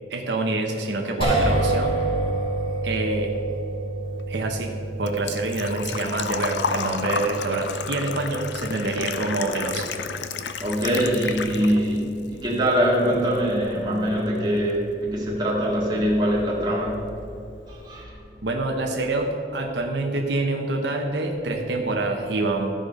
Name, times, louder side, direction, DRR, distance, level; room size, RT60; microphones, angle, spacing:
voice 1, 0.1-2.1 2.8-3.3 4.3-9.8 18.4-22.7, right 2 dB, 75° right, 1 dB, 0.9 m, -26 dB
sound 1, 1.2-13.5, right 2 dB, 30° left, 2.1 m, -30 dB
Engine / Trickle dribble / Fill (with liquid), 4.1-12.0 12.4-13.4 13.6-13.7 15.7-15.8 15.9-16.3 16.6-16.7 17.0-17.1, left 6 dB, 75° left, 0.5 m, -31 dB
voice 2, 10.6-17.1 17.7-18.1, equal, 20° right, -4 dB, 1.9 m, -23 dB
14.0 x 5.0 x 5.1 m, 2.8 s
head